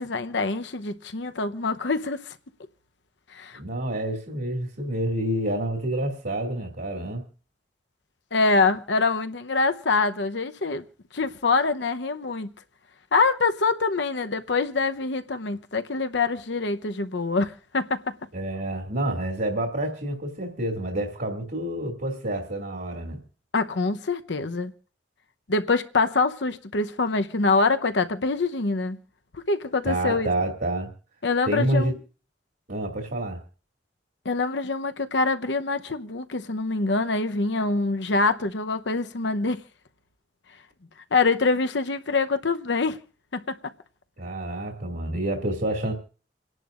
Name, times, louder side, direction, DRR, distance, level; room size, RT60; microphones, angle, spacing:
voice 1, 0.0-2.3 3.3-3.6 8.3-10.8 11.1-12.5 13.1-18.0 23.5-24.7 25.5-29.0 29.5-30.3 31.2-31.9 34.2-39.6 41.1-43.0 43.3-43.4, left 3 dB, 70° left, 0.9 m, -25 dB
voice 2, 3.5-7.2 18.3-23.2 29.8-30.9 31.4-31.9 32.7-33.4 44.2-45.9, right 1 dB, 60° right, 2.5 m, -28 dB
29.0 x 11.0 x 2.5 m
head